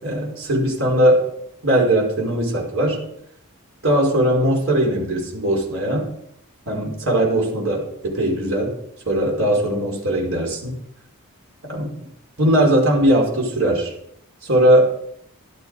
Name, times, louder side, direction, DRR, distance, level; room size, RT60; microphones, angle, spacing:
voice 1, 0.0-1.2 1.6-3.0 3.8-6.1 6.7-8.7 9.0-10.7 11.7-11.9 12.4-13.9 14.4-14.9, right 1 dB, 60° right, -1 dB, 5.0 m, -19 dB
15.0 x 11.5 x 5.0 m, 0.73 s
head